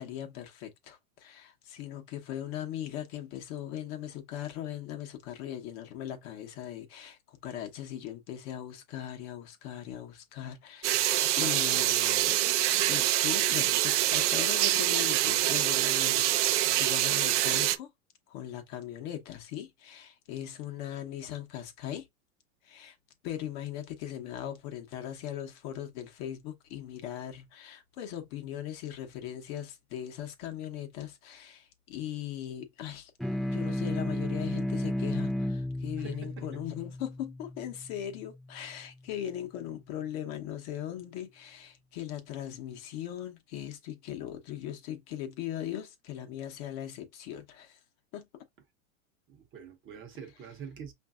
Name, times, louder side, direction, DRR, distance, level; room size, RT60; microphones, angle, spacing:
voice 1, 0.0-12.4 12.9-17.9 18.3-22.1 22.6-23.0 23.2-33.1 33.5-47.8 48.1-48.4, left 11 dB, 45° left, 0.9 m, -39 dB
sound 1, 10.8-17.8, right 14 dB, 60° right, 0.5 m, -25 dB
sound 2, 33.2-38.1, left 1 dB, ahead, 0.3 m, -33 dB
voice 2, 36.0-36.6 49.3-50.9, right 7 dB, 30° right, 0.9 m, -45 dB
5.1 x 2.6 x 2.3 m
hypercardioid pair, 125°, 41 cm